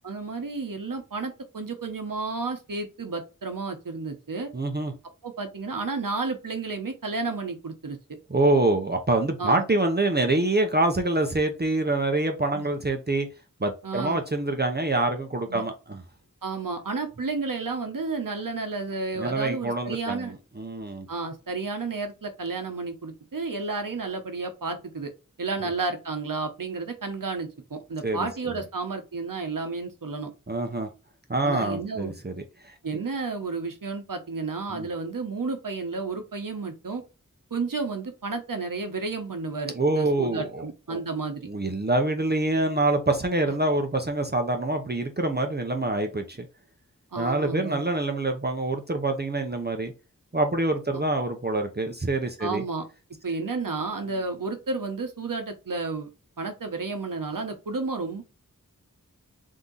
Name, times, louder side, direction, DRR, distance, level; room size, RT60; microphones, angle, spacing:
voice 1, 0.0-4.5 5.2-8.0 9.4-9.6 12.5-12.7 13.8-14.2 15.5-15.6 16.4-20.3 21.1-25.1 25.4-30.3 31.4-32.1 32.8-37.0 37.5-41.5 43.4-43.5 47.1-47.8 50.9-51.0 52.4-52.9 53.2-56.1 56.4-58.2, right 3 dB, 80° right, 6 dB, 0.9 m, -32 dB
voice 2, 4.5-4.9 8.3-13.3 13.6-16.0 19.2-21.1 28.0-28.3 30.5-30.9 31.3-32.4 32.6-32.7 34.7-34.9 39.7-41.0 41.4-46.5 47.2-49.9 50.3-52.6, right 2 dB, 30° right, 4 dB, 0.7 m, -26 dB
3.7 x 2.7 x 3.8 m, 0.30 s
wide cardioid pair, 45°, 32 cm